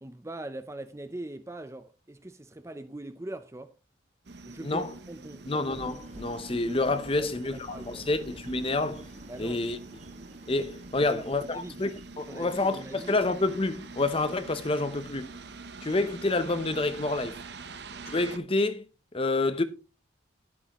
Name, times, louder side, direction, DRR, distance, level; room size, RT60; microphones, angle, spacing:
voice 1, 0.0-3.7 4.4-4.8 5.1-5.4 7.2-8.1 9.3-9.6 10.9-11.2 11.5-11.8 12.3-13.1, right 1 dB, 15° right, 0.5 m, -41 dB
sound 1, 4.2-18.4, right 3 dB, 55° right, 0.9 m, -45 dB
voice 2, 5.5-9.0 9.4-9.8 10.5-15.3 15.8-17.4 18.0-18.8 19.1-19.6, left 2 dB, 30° left, 0.7 m, -28 dB
sound 2, 5.7-12.1, right 1 dB, 35° right, 1.7 m, -49 dB
11.5 x 8.4 x 3.0 m
head